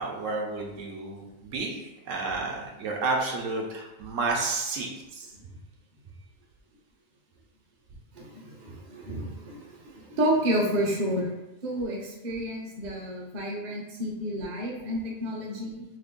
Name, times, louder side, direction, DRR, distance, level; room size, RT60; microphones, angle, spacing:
voice 1, 0.0-5.3, right 3 dB, 75° right, 0 dB, 1.0 m, -31 dB
voice 2, 8.1-11.3 11.6-15.8, equal, 45° right, -2 dB, 0.7 m, -30 dB
2.9 x 2.5 x 3.6 m, 1.0 s
omnidirectional pair, 1.3 m